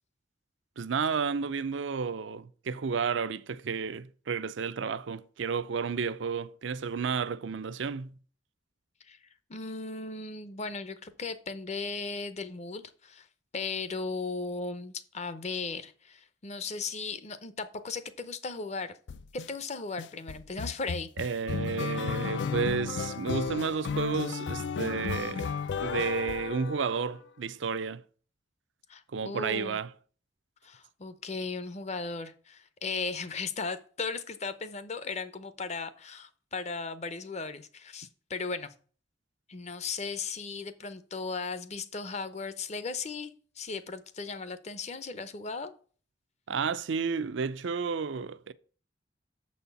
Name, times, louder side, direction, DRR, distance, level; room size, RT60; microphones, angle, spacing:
voice 1, 0.8-8.1 21.2-25.5 25.8-28.0 29.1-29.9 46.5-48.5, right 5 dB, 75° right, 0.5 m, -32 dB
voice 2, 9.5-13.3 13.5-18.9 19.3-21.1 28.9-29.8 30.6-38.7 39.5-45.7, left 4 dB, 35° left, 0.7 m, -37 dB
sound 1, 19.1-19.5 20.0-27.2, left 6 dB, 70° left, 0.4 m, -34 dB
7.1 x 4.3 x 6.8 m
head